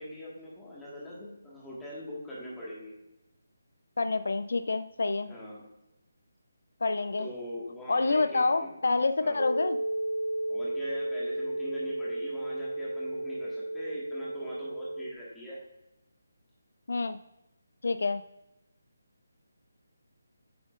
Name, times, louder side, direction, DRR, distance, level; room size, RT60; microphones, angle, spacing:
voice 1, 0.0-2.9 5.3-5.6 7.2-8.7 9.2-9.4 10.5-15.6, equal, 5° left, -7 dB, 1.6 m, -42 dB
voice 2, 4.0-5.3 6.8-7.3 7.9-9.8 16.9-17.2 17.8-18.2, left 3 dB, 65° left, 11 dB, 0.4 m, -27 dB
sound 1, 9.4-15.1, right 1 dB, 85° right, 0.6 m, -33 dB
9.4 x 7.3 x 2.5 m, 0.91 s
hypercardioid pair, 175°, 0 cm